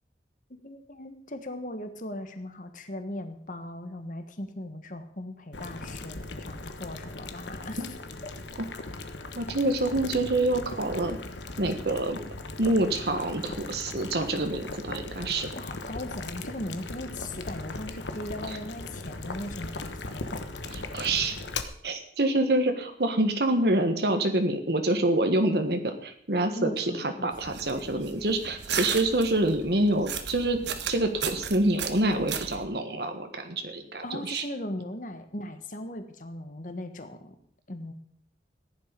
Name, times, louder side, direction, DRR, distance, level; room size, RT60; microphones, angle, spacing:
voice 1, 0.6-7.8 15.5-20.4 26.5-27.3 34.0-37.4 37.7-37.9, left 1 dB, 45° left, 8 dB, 1.4 m, -38 dB
Boiling, 5.5-21.6, left 3 dB, 90° left, 1.2 m, -38 dB
voice 2, 9.3-11.2 11.6-12.2 12.6-15.5 18.5-18.6 20.7-21.4 21.8-30.6 30.9-34.4, right 1 dB, 65° right, 6 dB, 1.4 m, -26 dB
sound 1, 27.3-32.7, right 7 dB, 85° right, 1.3 m, -36 dB
15.5 x 11.0 x 5.3 m, 0.65 s
head